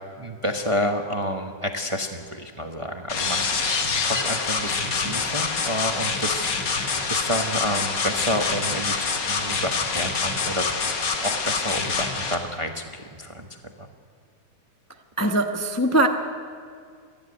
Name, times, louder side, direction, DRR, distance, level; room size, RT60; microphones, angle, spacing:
voice 1, 0.2-10.7 11.2-13.5 13.8-13.9, equal, 25° right, 4 dB, 0.8 m, -29 dB
sound 1, 3.1-12.3, left 4 dB, 90° left, 2.2 m, -26 dB
voice 2, 15.2-16.1, right 1 dB, 15° left, 4 dB, 0.7 m, -21 dB
26.5 x 10.5 x 9.6 m, 2.1 s
omnidirectional pair, 1.9 m